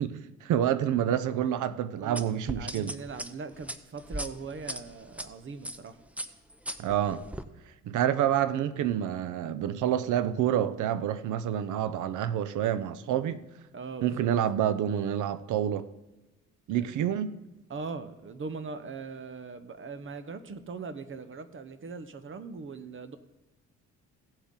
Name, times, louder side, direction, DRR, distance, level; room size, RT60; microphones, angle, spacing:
voice 1, 0.0-2.9 6.8-7.2 7.8-13.4 14.0-15.9 16.7-17.4, right 10 dB, 80° right, 0.7 m, -28 dB
sound 1, 2.2-5.3 5.6-5.9 6.2-7.4, right 1 dB, 5° right, 0.6 m, -38 dB
voice 2, 2.6-6.0 13.7-14.3 16.9-17.0 17.7-23.2, right 4 dB, 40° right, 1.0 m, -40 dB
16.5 x 7.2 x 3.8 m
cardioid pair, 90°, 30 cm